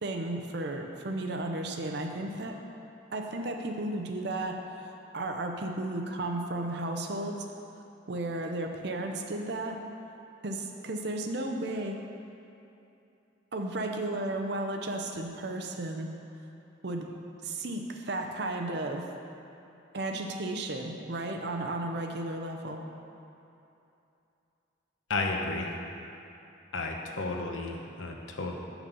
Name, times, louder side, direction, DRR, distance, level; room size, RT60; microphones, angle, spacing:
voice 1, 0.0-2.6 3.1-7.5 8.1-9.8 10.4-12.0 13.5-16.1 16.8-17.1 17.4-19.1 19.9-22.8, right 2 dB, 55° right, 3 dB, 0.6 m, -34 dB
voice 2, 25.1-25.7 26.7-28.5, left 3 dB, 80° left, 1 dB, 0.8 m, -32 dB
6.0 x 5.4 x 6.8 m, 2.8 s
head